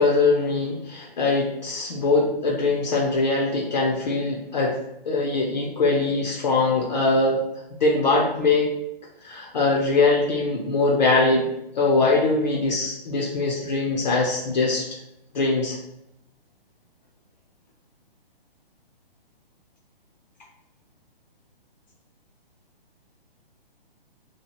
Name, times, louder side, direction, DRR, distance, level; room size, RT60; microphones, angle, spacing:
voice 1, 0.0-4.8 5.1-7.4 7.8-8.7 9.2-11.5 11.7-14.9 15.3-15.8, left 3 dB, 45° left, -2 dB, 0.5 m, -22 dB
2.8 x 2.3 x 2.9 m, 0.84 s
hypercardioid pair, 165°, 30 cm